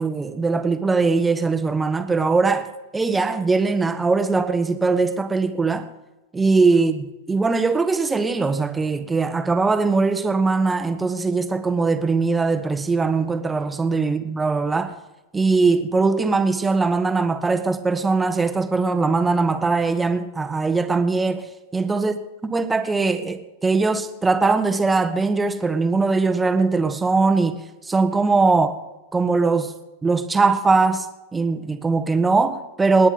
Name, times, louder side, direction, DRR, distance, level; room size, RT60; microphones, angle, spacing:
voice 1, 0.0-2.7 2.9-5.9 6.3-14.9 15.3-21.4 21.7-22.1 22.4-27.6 27.8-28.8 29.1-29.7 30.0-31.1 31.3-33.1, right 4 dB, 10° right, 10 dB, 1.3 m, -21 dB
28.5 x 10.0 x 3.9 m, 1.1 s
figure-of-eight pair, 90°, 0 cm